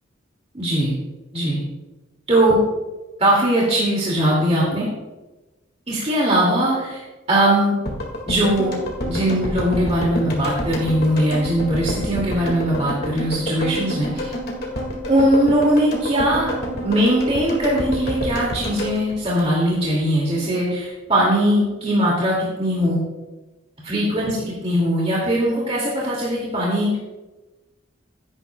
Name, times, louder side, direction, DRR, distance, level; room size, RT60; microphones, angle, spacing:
voice 1, 0.5-1.0 1.3-1.6 2.3-2.6 3.2-4.9 5.9-7.0 7.3-7.8 8.3-8.8 9.1-14.3 15.1-16.6 16.8-23.0 23.8-27.0, right 1 dB, 30° right, -5 dB, 2.3 m, -20 dB
sound 1, 7.9-20.0 20.3-20.4, equal, 50° left, 2.0 m, -28 dB
16.0 x 9.8 x 2.3 m, 1.1 s
head